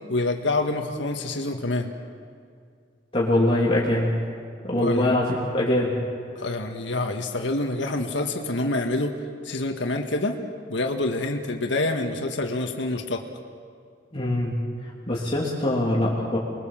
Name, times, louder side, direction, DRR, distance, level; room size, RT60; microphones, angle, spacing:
voice 1, 0.1-1.9 4.7-5.1 6.4-9.1 9.4-10.4 10.7-13.2, left 2 dB, 75° left, 4 dB, 1.8 m, -27 dB
voice 2, 3.1-4.1 4.6-6.0 14.1-14.5 15.1-16.4, left 1 dB, 30° left, -5 dB, 3.0 m, -23 dB
28.5 x 22.5 x 7.5 m, 2.3 s
head